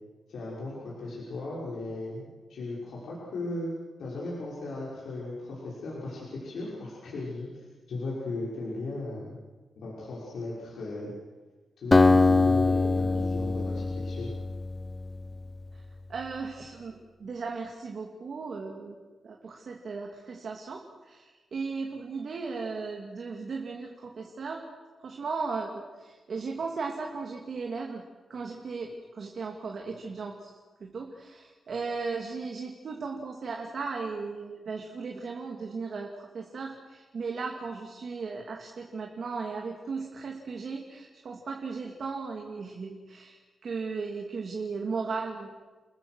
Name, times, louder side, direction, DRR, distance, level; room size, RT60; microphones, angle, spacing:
voice 1, 0.3-3.7 4.0-9.4 9.8-11.1 11.8-14.3, left 2 dB, 75° left, -6 dB, 6.2 m, -37 dB
Acoustic guitar, 11.9-15.5, left 3 dB, 20° left, 0.8 m, -23 dB
voice 2, 16.1-19.0 19.2-24.6 25.0-28.0 28.3-45.6, right 4 dB, 50° right, 1 dB, 2.4 m, -36 dB
30.0 x 21.0 x 6.3 m, 1.3 s
wide cardioid pair, 165°, 0 cm